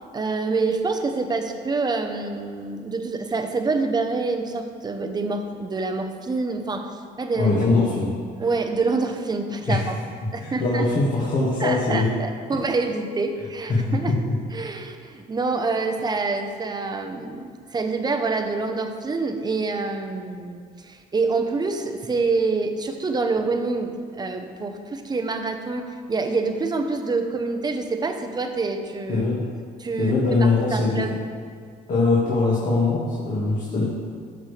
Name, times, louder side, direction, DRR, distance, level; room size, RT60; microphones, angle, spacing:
voice 1, 0.1-7.5 8.4-10.0 10.3-10.9 11.6-14.1 14.5-29.2 29.8-31.2, right 3 dB, 25° right, 5 dB, 0.9 m, -26 dB
voice 2, 7.3-8.1 9.7-9.8 10.4-12.0 13.7-13.8 29.1-29.4 30.0-31.0 31.9-33.8, left 3 dB, 50° left, -6 dB, 2.0 m, -21 dB
13.0 x 6.7 x 3.4 m, 2.1 s
cardioid pair, 110°, 17 cm